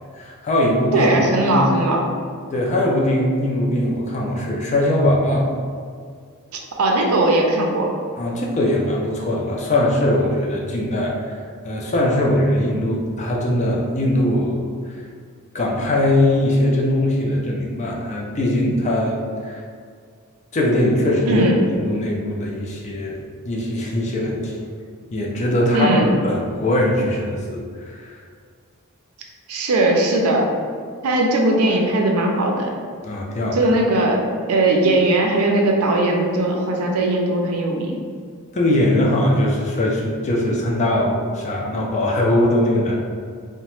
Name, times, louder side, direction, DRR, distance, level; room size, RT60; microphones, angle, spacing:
voice 1, 0.2-1.1 1.4-1.6 2.5-5.6 8.2-14.7 15.5-19.6 20.5-21.5 21.7-23.2 23.4-24.6 25.1-28.2 33.0-33.7 38.5-43.0, left 1 dB, 35° left, -2 dB, 0.4 m, -21 dB
voice 2, 0.9-2.1 6.8-7.9 21.3-21.6 25.7-26.1 29.5-30.5 31.0-32.7 33.5-38.0, right 1 dB, 85° right, 0 dB, 0.5 m, -19 dB
2.9 x 2.1 x 3.0 m, 2.1 s
head